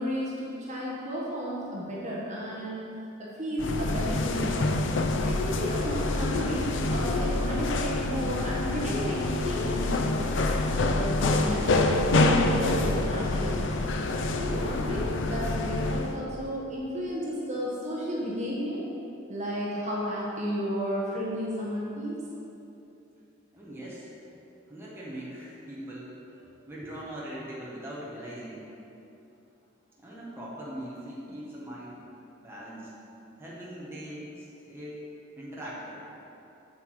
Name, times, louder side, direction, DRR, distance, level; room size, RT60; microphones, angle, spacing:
voice 1, 0.0-2.9 3.2-4.6 5.2-10.4 10.9-13.8 14.4-18.8 19.3-22.2, equal, 35° right, -6 dB, 1.4 m, -32 dB
sound 1, 3.6-16.2, left 2 dB, 65° left, 0.5 m, -27 dB
voice 2, 23.5-24.1 24.7-26.1 26.7-28.6 30.0-32.0 32.4-32.9 33.4-35.0 35.3-36.1, right 1 dB, 10° right, -7 dB, 1.5 m, -41 dB
8.1 x 7.2 x 4.8 m, 2.8 s
head